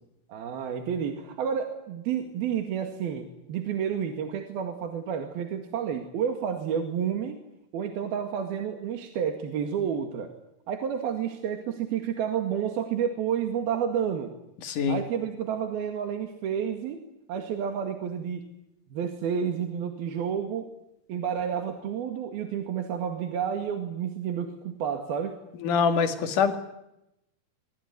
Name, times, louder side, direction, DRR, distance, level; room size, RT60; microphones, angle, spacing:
voice 1, 0.3-7.4 7.7-10.3 10.7-14.4 14.9-17.0 17.3-18.5 18.9-20.7 21.1-25.4, right 8 dB, 70° right, 6 dB, 3.8 m, -30 dB
voice 2, 14.6-15.0 25.6-26.6, left 6 dB, 55° left, 8 dB, 3.5 m, -24 dB
25.5 x 24.0 x 9.6 m, 0.87 s
omnidirectional pair, 4.6 m